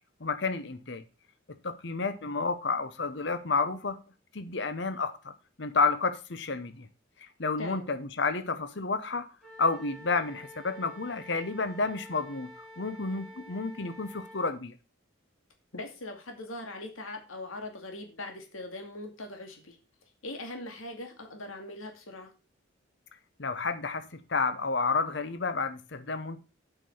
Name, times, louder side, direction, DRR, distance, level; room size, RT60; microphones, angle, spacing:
voice 1, 0.2-1.0 1.5-4.0 4.3-5.3 5.6-6.9 7.2-9.2 9.6-12.5 12.8-14.7 23.4-26.4, left 4 dB, 60° left, 0.9 m, -30 dB
voice 2, 7.6-7.9 15.7-19.8 20.2-22.3, left 2 dB, 90° left, 2.3 m, -41 dB
Wind instrument woodwind instrument, 9.4-14.6, left 1 dB, 5° left, 2.3 m, -49 dB
8.2 x 5.8 x 7.1 m
head